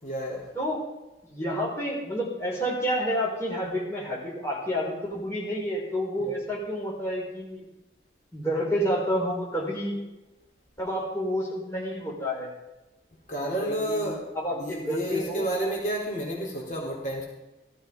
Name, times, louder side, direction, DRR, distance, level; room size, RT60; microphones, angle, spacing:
voice 1, 0.0-0.5 6.2-6.3 13.3-17.3, right 1 dB, 45° left, -3 dB, 3.8 m, -31 dB
voice 2, 1.3-7.6 8.3-10.0 10.8-12.5 13.6-15.5, equal, 15° left, -4 dB, 4.8 m, -29 dB
17.5 x 14.0 x 5.3 m, 1.0 s
head